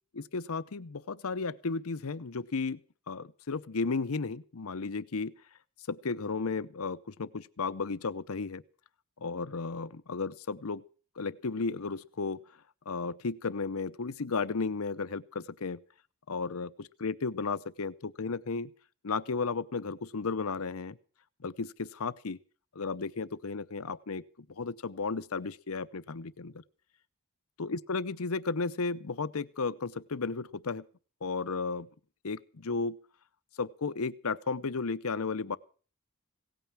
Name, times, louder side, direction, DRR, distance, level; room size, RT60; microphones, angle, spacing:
voice 1, 0.1-2.8 3.1-5.3 5.9-8.6 9.2-10.8 11.2-12.4 12.9-15.8 16.3-18.7 19.0-21.0 21.4-22.4 22.7-24.2 24.5-26.6 27.6-30.8 31.2-31.9 32.2-33.0 33.6-35.6, left 4 dB, 75° left, 16 dB, 0.7 m, -34 dB
17.5 x 9.1 x 7.4 m, 0.41 s
head